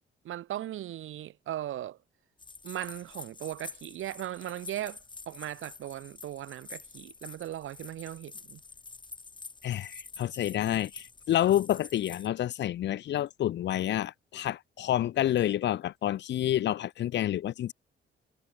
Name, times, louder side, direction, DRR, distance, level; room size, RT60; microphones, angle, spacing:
voice 1, 0.2-2.0 2.6-5.0 5.3-8.6, right 12 dB, 85° right, 1.0 m, -38 dB
sound 1, 2.4-12.3, left 4 dB, 25° left, 5.2 m, -47 dB
voice 2, 9.6-17.7, left 12 dB, 60° left, 0.6 m, -29 dB
wide cardioid pair, 175°, 20 cm